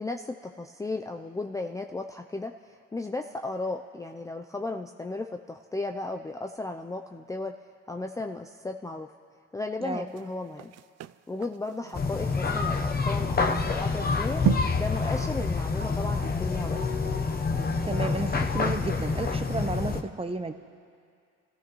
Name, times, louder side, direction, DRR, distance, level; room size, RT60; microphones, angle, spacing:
voice 1, 0.0-7.6 7.9-9.1 9.5-10.7 11.3-14.4 14.8-16.8, left 2 dB, 10° left, 3 dB, 0.5 m, -35 dB
sound 1, 10.1-18.6 19.0-19.1, right 14 dB, 60° right, 0.4 m, -36 dB
sound 2, 11.9-20.0, left 4 dB, 30° left, 0.9 m, -27 dB
voice 2, 17.9-20.5, right 3 dB, 20° right, 8 dB, 0.9 m, -32 dB
29.5 x 15.0 x 3.1 m, 2.2 s
cardioid pair, 90°, 30 cm